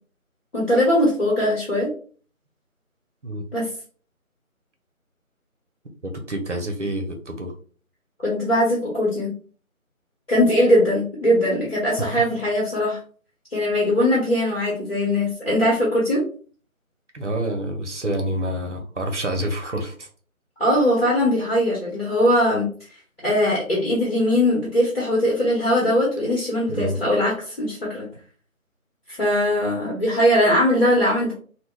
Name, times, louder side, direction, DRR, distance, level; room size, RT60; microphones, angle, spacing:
voice 1, 0.5-1.9 3.5-3.7 8.2-9.3 10.3-13.0 13.5-16.2 20.6-22.7 23.2-28.1 29.2-31.3, left 1 dB, 45° left, -5 dB, 1.0 m, -20 dB
voice 2, 6.0-7.5 12.0-12.2 17.1-20.1 26.7-27.0, right 1 dB, 55° right, 4 dB, 0.7 m, -28 dB
3.5 x 2.1 x 2.2 m, 0.42 s
figure-of-eight pair, 165°, 43 cm